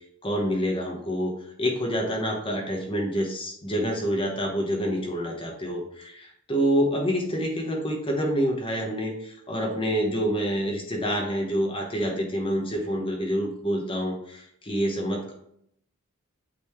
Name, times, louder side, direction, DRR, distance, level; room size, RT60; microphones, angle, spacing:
voice 1, 0.2-15.3, equal, 25° left, 1 dB, 1.1 m, -27 dB
8.6 x 4.3 x 3.2 m, 0.71 s
head